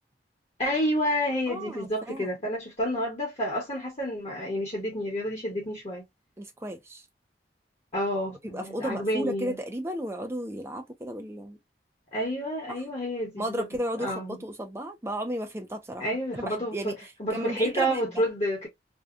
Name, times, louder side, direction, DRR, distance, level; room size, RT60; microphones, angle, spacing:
voice 1, 0.6-6.0 7.9-9.6 12.1-14.4 16.0-16.9 17.2-18.7, equal, 35° left, 1.1 m, -29 dB
voice 2, 1.5-2.3 6.4-7.0 8.5-11.6 12.7-12.8 13.4-16.1 16.3-17.0 17.3-18.2, right 1 dB, 15° right, 0.5 m, -34 dB
2.7 x 2.3 x 2.4 m
head